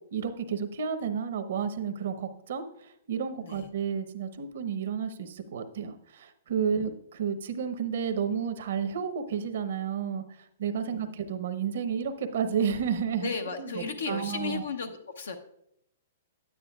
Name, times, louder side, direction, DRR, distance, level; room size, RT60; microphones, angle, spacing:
voice 1, 0.1-13.3 13.6-14.7, right 7 dB, 70° right, 9 dB, 0.8 m, -31 dB
voice 2, 10.9-11.2 13.2-15.4, left 5 dB, 85° left, 5 dB, 0.8 m, -35 dB
9.8 x 9.5 x 2.3 m, 0.76 s
hypercardioid pair, 130°, 0 cm